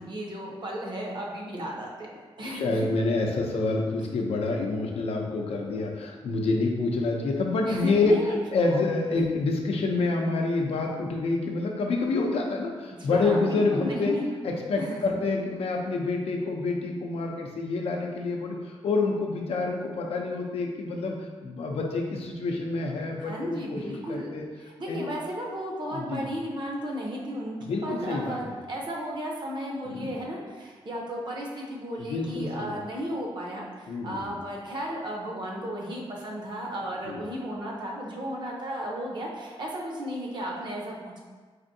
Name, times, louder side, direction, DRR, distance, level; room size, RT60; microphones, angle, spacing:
voice 1, 0.0-2.1 2.4-2.9 7.6-8.4 8.7-8.8 13.0-14.3 14.8-15.1 23.2-24.3 24.6-27.6 27.8-41.2, equal, 50° right, -2 dB, 0.7 m, -34 dB
voice 2, 2.4-14.1 14.4-24.4 24.9-25.1 25.9-26.3 27.6-28.6 29.8-30.1 32.0-32.8 33.9-34.4 37.1-37.2, left 3 dB, 75° left, 1 dB, 0.5 m, -27 dB
4.1 x 2.6 x 2.6 m, 1.4 s
cardioid pair, 105°, 10 cm